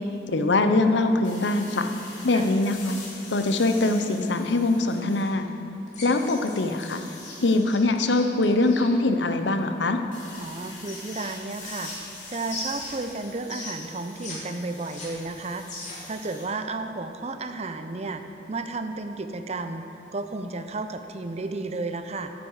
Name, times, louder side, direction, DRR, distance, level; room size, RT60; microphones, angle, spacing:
voice 1, 0.0-1.9 2.2-3.0 3.3-5.5 6.0-7.0 7.4-10.0, left 2 dB, 70° left, 7 dB, 0.8 m, -23 dB
sound 1, 1.2-5.5 5.9-7.6 10.1-16.5, left 3 dB, 85° left, 3.1 m, -45 dB
sound 2, 5.9-8.9 10.3-12.2 12.5-14.4 14.6-16.1, left 2 dB, 40° left, 2.6 m, -39 dB
voice 2, 10.4-15.6 16.0-18.2 18.5-19.8 20.1-22.3, right 3 dB, 35° right, 8 dB, 0.6 m, -33 dB
14.5 x 9.6 x 4.8 m, 3.0 s
head